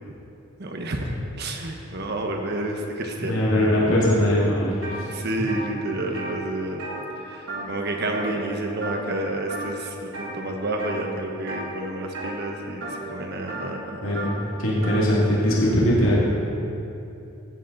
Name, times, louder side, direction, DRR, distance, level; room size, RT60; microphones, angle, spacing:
voice 1, 0.6-3.7 4.9-6.8 7.1-14.3, right 1 dB, 55° right, 2 dB, 1.2 m, -30 dB
voice 2, 3.3-4.7 14.0-16.2, equal, 85° left, -6 dB, 2.2 m, -20 dB
sound 1, 4.8-5.0 5.3-7.9 8.1-8.5 8.8-9.2 9.5-10.3 10.8-11.1 11.4-15.1, right 1 dB, 85° right, 2.6 m, -35 dB
15.0 x 8.3 x 4.0 m, 2.8 s
head